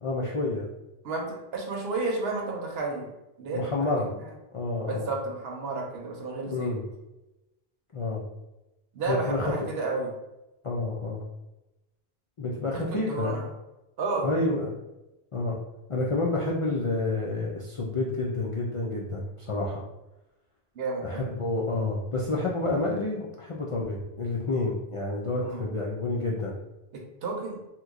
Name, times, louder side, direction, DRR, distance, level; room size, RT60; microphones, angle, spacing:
voice 1, 0.0-0.7 3.5-4.1 4.5-5.1 6.5-6.8 7.9-8.2 9.1-9.5 10.6-11.2 12.4-13.3 14.2-14.7 15.3-15.6 15.9-19.8 21.0-26.6, left 2 dB, 60° left, -3 dB, 0.3 m, -29 dB
voice 2, 1.0-3.1 3.4-4.2 4.8-6.8 8.9-10.1 12.7-13.5 14.0-14.3 20.7-21.2 25.4-25.6 27.2-27.6, right 3 dB, 70° right, 1 dB, 0.9 m, -32 dB
2.9 x 2.2 x 3.6 m, 0.97 s
omnidirectional pair, 1.1 m